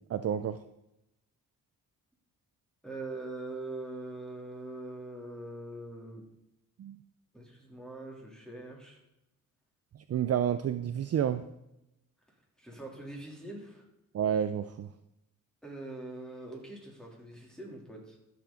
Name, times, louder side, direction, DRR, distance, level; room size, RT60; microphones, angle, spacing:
voice 1, 0.1-0.6 6.8-7.0 10.1-11.4 14.1-14.9, right 9 dB, 45° right, 10 dB, 0.5 m, -29 dB
voice 2, 2.8-6.2 7.3-9.0 12.6-13.8 15.6-18.2, right 2 dB, ahead, -1 dB, 3.0 m, -43 dB
13.0 x 7.0 x 3.9 m, 0.86 s
cardioid pair, 100°, 36 cm